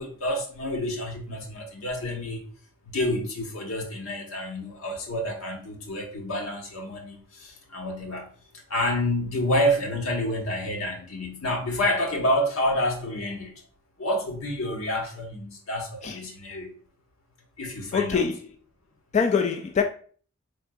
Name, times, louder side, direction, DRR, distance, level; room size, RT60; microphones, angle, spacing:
voice 1, 0.0-2.4 2.8-8.3 8.5-13.6 14.0-16.7 17.6-18.3, left 1 dB, 90° left, 1.2 m, -28 dB
voice 2, 17.9-18.4 19.1-19.8, left 6 dB, 35° left, 0.3 m, -23 dB
4.7 x 3.5 x 2.3 m
head